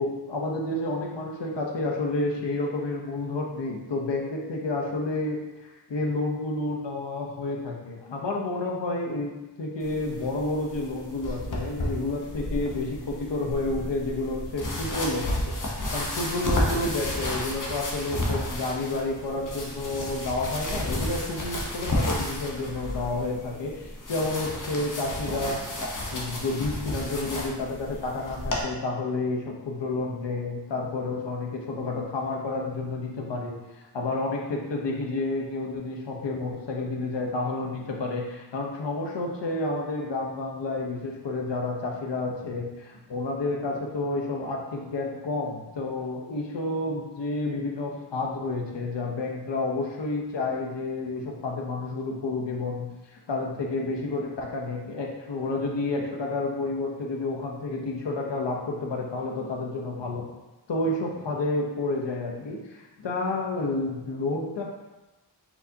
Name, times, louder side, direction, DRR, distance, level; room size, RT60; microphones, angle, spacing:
voice 1, 0.0-25.6 26.1-60.2 60.7-64.6, left 2 dB, 85° left, 0 dB, 0.9 m, -30 dB
sound 1, 9.8-28.6, left 1 dB, 50° left, 0.9 m, -32 dB
4.6 x 4.0 x 2.7 m, 1.1 s
wide cardioid pair, 95°, 41 cm